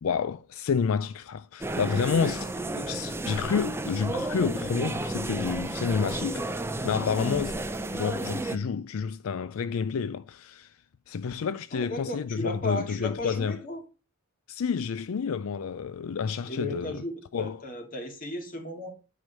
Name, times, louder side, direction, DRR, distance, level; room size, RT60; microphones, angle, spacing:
voice 1, 0.0-6.5 6.8-7.6 7.9-10.8 11.1-13.6 14.5-17.0 17.3-17.6, left 6 dB, 75° left, 0.4 m, -29 dB
sound 1, 1.6-8.6, right 2 dB, 10° right, 0.6 m, -32 dB
voice 2, 11.7-13.8 16.4-18.9, left 1 dB, 40° left, 2.2 m, -35 dB
9.3 x 5.0 x 5.2 m
head